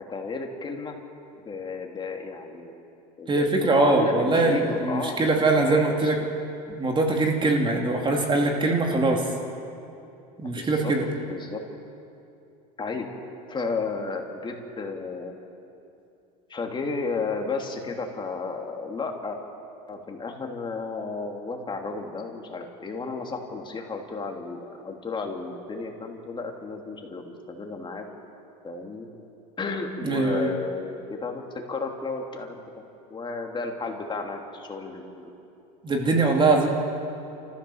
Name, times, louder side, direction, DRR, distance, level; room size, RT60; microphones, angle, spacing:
voice 1, 0.1-0.9 1.4-2.8 3.2-5.2 5.6-6.2 7.7-7.8 10.5-10.9 11.2-11.6 12.8-13.1 13.5-15.3 16.5-19.4 19.9-28.0 28.6-29.1 29.6-31.4 31.7-32.5 33.1-35.3, left 4 dB, 25° left, 2 dB, 3.0 m, -33 dB
voice 2, 3.3-6.2 6.7-9.3 10.4-11.1 30.0-30.5 35.8-36.7, right 2 dB, 25° right, 1 dB, 2.8 m, -22 dB
29.5 x 15.0 x 7.2 m, 2.7 s
supercardioid pair, 110°, 19 cm